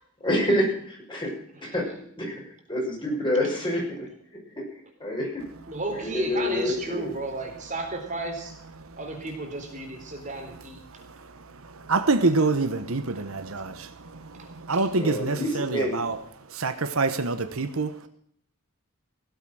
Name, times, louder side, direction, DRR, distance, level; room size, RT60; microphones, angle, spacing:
voice 1, 0.2-1.3 1.6-1.8 2.2-2.3 2.7-4.1 5.0-5.3 5.9-7.1 14.9-16.0, left 1 dB, 20° left, 6.5 m, -27 dB
voice 2, 5.7-8.5 9.0-10.8, right 2 dB, 35° right, 3.8 m, -33 dB
voice 3, 10.8-16.2 16.5-18.1, right 3 dB, 75° right, 1.1 m, -27 dB
18.0 x 8.2 x 7.6 m
head